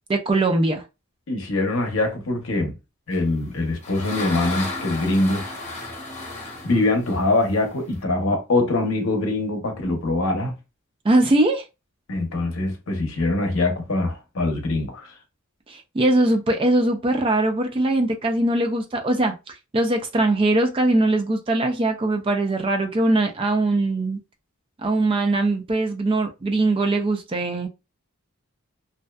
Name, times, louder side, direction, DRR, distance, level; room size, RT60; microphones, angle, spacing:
voice 1, 0.1-0.8 11.0-11.7 15.7-24.2 24.8-27.7, right 2 dB, 25° right, 0.3 m, -21 dB
voice 2, 1.3-2.7 3.1-5.4 6.6-10.5 12.1-15.1, left 2 dB, 65° left, 0.7 m, -23 dB
sound 1, 3.3-8.0, left 2 dB, 30° left, 1.0 m, -34 dB
2.6 x 2.2 x 2.2 m
head